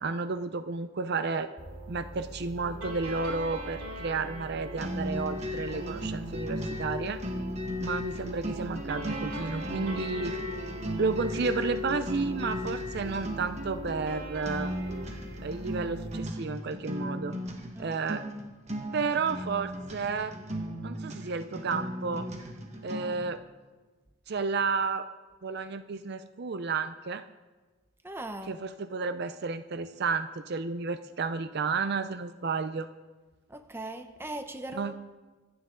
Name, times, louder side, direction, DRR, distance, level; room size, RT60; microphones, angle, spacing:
voice 1, 0.0-1.5 1.9-7.2 7.8-10.4 11.0-14.7 15.4-17.4 17.8-18.2 18.9-20.3 20.8-22.3 22.8-23.4 24.3-25.1 25.4-27.2 28.5-32.9 34.7-34.9, right 4 dB, 50° right, 11 dB, 0.5 m, -32 dB
sound 1, 1.6-16.2, right 1 dB, 90° right, 3.1 m, -41 dB
sound 2, 4.8-23.3, left 1 dB, 30° right, 1.5 m, -36 dB
voice 2, 28.0-28.5 33.5-35.0, right 1 dB, 10° right, 7 dB, 0.8 m, -39 dB
25.5 x 9.7 x 3.8 m, 1.3 s
head